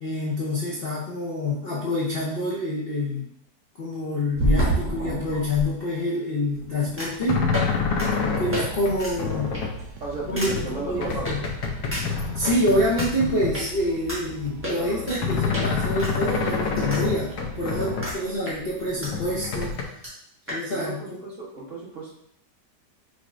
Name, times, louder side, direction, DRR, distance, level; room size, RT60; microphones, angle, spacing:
voice 1, 0.0-3.3 3.7-7.4 8.4-9.6 10.3-11.5 12.3-19.7 20.5-21.2, left 1 dB, 50° left, -6 dB, 0.7 m, -27 dB
sound 1, 4.3-5.7 7.0-7.2 7.5-7.7 8.0-8.1 8.5-8.6 9.0-9.1 9.5-9.8 10.4-10.5 11.3-11.4 11.9-12.5 13.0-13.1 13.5-13.6 14.1-14.2 14.6-15.2 15.5-15.7 16.0-17.0 17.3-17.4 18.0-18.2 18.5-19.1 19.4-19.5 19.7-19.8 20.0-20.1 20.5-20.6, right 1 dB, 10° right, 1.1 m, -28 dB
sound 2, 6.5-13.8 14.1-18.1 18.5-19.8, left 5 dB, 75° left, 1.2 m, -28 dB
sound 3, 7.8-18.1, right 3 dB, 75° right, 1.1 m, -42 dB
voice 2, 10.0-11.5 14.7-15.5 17.8-18.5 20.7-22.1, right 3 dB, 50° right, -4 dB, 1.3 m, -35 dB
5.1 x 3.5 x 2.5 m, 0.69 s
omnidirectional pair, 1.8 m